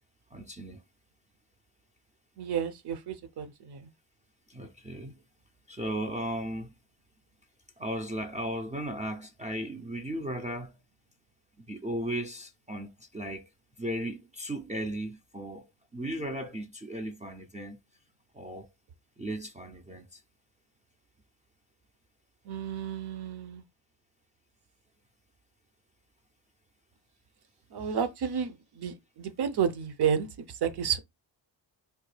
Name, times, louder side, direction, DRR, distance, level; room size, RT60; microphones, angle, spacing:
voice 1, 0.3-0.8 4.5-5.2 5.7-6.7 7.8-10.7 11.7-13.5 13.8-15.7 15.9-17.8 18.3-18.7 19.2-20.2, right 1 dB, 15° right, 0.3 m, -36 dB
voice 2, 2.4-3.9 22.4-23.6 27.7-31.0, right 7 dB, 55° right, 0.7 m, -31 dB
3.4 x 2.2 x 3.2 m
cardioid pair, 95°, 46 cm